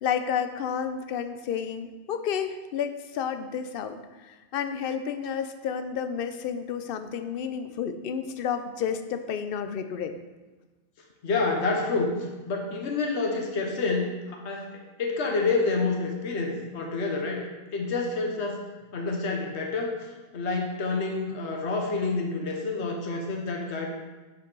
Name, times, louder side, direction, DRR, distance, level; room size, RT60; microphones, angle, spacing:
voice 1, 0.0-10.1, left 7 dB, 60° left, 9 dB, 0.8 m, -31 dB
voice 2, 11.2-12.1 12.5-14.7 15.0-18.6 18.9-20.0 20.3-23.9, left 3 dB, 75° left, 1 dB, 1.3 m, -28 dB
8.2 x 5.6 x 5.3 m, 1.2 s
omnidirectional pair, 1.1 m